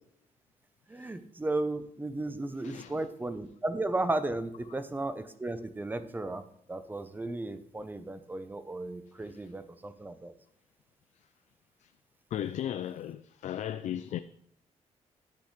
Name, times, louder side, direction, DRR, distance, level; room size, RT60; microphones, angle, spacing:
voice 1, 0.9-6.4 6.7-10.3, right 2 dB, 15° right, 0.7 m, -34 dB
voice 2, 2.6-3.1 12.3-14.2, left 11 dB, 75° left, 0.4 m, -36 dB
10.5 x 7.8 x 3.2 m
wide cardioid pair, 140°, 12 cm